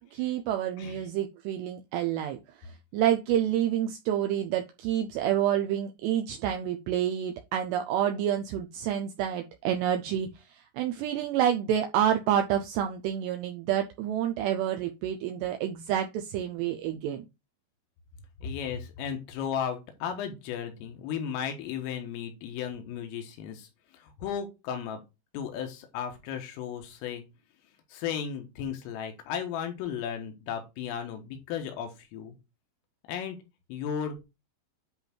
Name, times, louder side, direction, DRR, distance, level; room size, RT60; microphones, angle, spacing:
voice 1, 0.1-17.3, right 10 dB, 85° right, 5 dB, 2.4 m, -28 dB
voice 2, 18.4-23.7 23.9-25.0 25.3-27.2 27.9-32.4 33.1-33.4 33.7-34.2, left 8 dB, 85° left, 5 dB, 4.0 m, -35 dB
10.5 x 3.5 x 4.4 m, 0.25 s
omnidirectional pair, 5.7 m